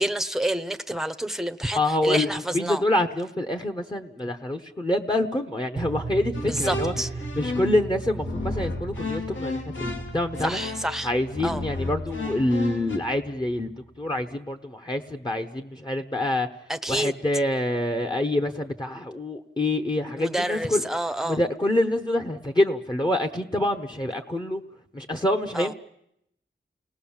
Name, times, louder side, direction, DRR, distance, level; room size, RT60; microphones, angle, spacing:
voice 1, 0.0-2.8 6.4-7.1 10.4-11.1 11.4-11.6 16.7-17.2 20.2-21.4 25.5-25.7, right 1 dB, ahead, 0.9 m, -28 dB
voice 2, 1.7-6.9 7.3-10.6 11.0-13.7 14.0-16.5 16.9-20.8 21.2-24.6 24.9-25.7, left 1 dB, 20° left, 1.1 m, -26 dB
sound 1, 5.8-13.9, right 3 dB, 40° right, 0.9 m, -38 dB
sound 2, 6.3-7.8 8.2-13.0, left 2 dB, 75° left, 3.1 m, -33 dB
29.5 x 19.0 x 7.3 m
wide cardioid pair, 125°, 20 cm